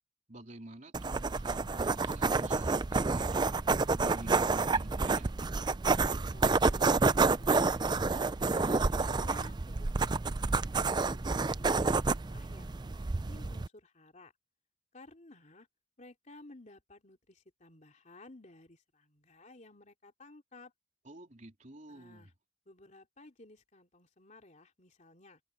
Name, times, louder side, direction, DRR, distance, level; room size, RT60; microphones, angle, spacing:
voice 1, 0.3-3.5 3.9-5.4 21.0-22.3, right 1 dB, 40° right, 3.8 m, -48 dB
sound 1, 0.9-13.7, right 3 dB, 20° right, 0.4 m, -29 dB
voice 2, 6.3-8.5 8.9-13.0 13.3-14.3 14.9-15.7 16.0-20.7 21.9-22.3 22.7-25.4, left 2 dB, 40° left, 3.1 m, -55 dB
head